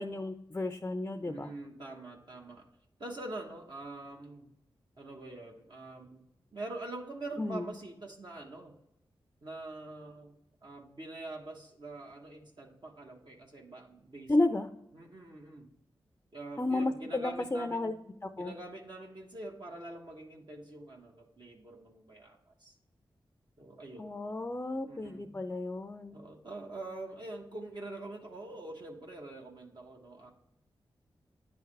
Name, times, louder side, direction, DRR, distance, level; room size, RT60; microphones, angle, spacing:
voice 1, 0.0-1.5 7.4-7.7 14.3-14.7 16.6-17.9 18.2-18.5 24.0-26.2, left 2 dB, 20° left, 8 dB, 0.5 m, -32 dB
voice 2, 1.2-2.7 3.0-4.5 5.0-6.2 6.5-8.8 9.4-10.3 10.6-14.3 14.9-15.7 16.3-17.9 18.4-22.7 23.6-24.1 24.8-25.4 26.1-30.3, right 2 dB, 50° right, -1 dB, 1.1 m, -45 dB
9.6 x 3.5 x 3.3 m, 0.82 s
cardioid pair, 55°, 9 cm